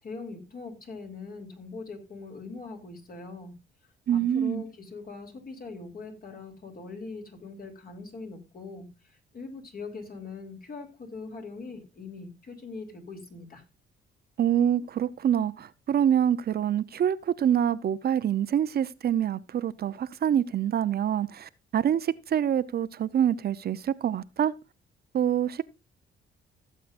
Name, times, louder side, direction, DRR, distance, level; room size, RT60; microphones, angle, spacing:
voice 1, 0.0-3.5 4.1-13.6, left 3 dB, 45° left, 3.2 m, -41 dB
voice 2, 4.1-4.6 14.4-24.5 25.1-25.6, right 9 dB, 55° right, 0.6 m, -26 dB
16.0 x 7.5 x 2.5 m
cardioid pair, 90°, 20 cm